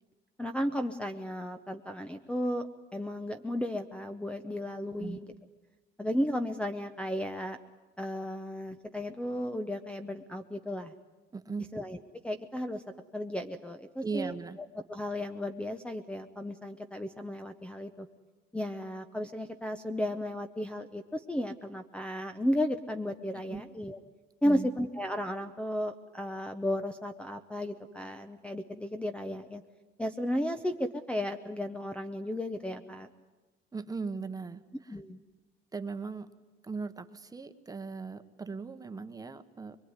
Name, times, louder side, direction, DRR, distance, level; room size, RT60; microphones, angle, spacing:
voice 1, 0.4-2.7 2.9-5.3 6.0-7.6 8.0-10.9 11.7-12.0 12.2-12.8 13.1-14.3 14.9-18.1 18.5-24.0 24.4-29.6 30.0-33.1 34.9-35.2, equal, 5° left, 7 dB, 0.8 m, -34 dB
voice 2, 11.3-11.7 14.0-14.6 23.5-23.6 24.4-24.7 33.7-35.0 35.7-36.3 36.6-39.8, right 4 dB, 15° right, 9 dB, 1.1 m, -38 dB
23.5 x 23.5 x 9.7 m, 1.2 s
cardioid pair, 165°, 21 cm